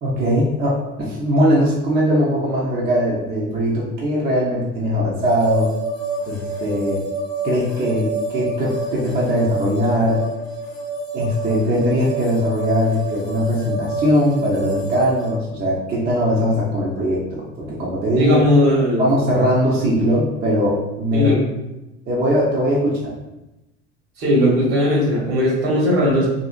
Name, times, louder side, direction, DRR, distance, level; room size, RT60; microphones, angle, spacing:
voice 1, 0.0-5.7 6.3-7.0 7.4-10.2 11.1-18.4 19.0-21.3 22.1-23.1, equal, 25° right, -5 dB, 0.6 m, -20 dB
sound 1, 5.2-15.3, right 2 dB, 10° left, 0.8 m, -28 dB
voice 2, 18.1-19.1 21.1-21.4 24.2-26.3, left 1 dB, 55° right, -4 dB, 1.2 m, -17 dB
2.7 x 2.6 x 2.4 m, 0.97 s
figure-of-eight pair, 75°, 37 cm